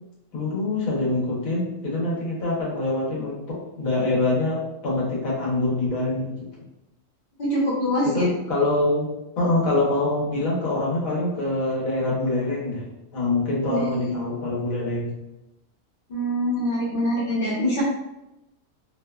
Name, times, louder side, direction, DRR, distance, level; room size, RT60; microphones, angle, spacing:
voice 1, 0.3-6.3 8.0-9.1 9.4-12.8 13.1-15.1, left 2 dB, 85° left, -5 dB, 1.3 m, -25 dB
voice 2, 7.4-8.2 13.6-14.2 16.1-17.8, equal, 50° left, -6 dB, 0.8 m, -24 dB
2.8 x 2.1 x 2.2 m, 0.92 s
omnidirectional pair, 1.4 m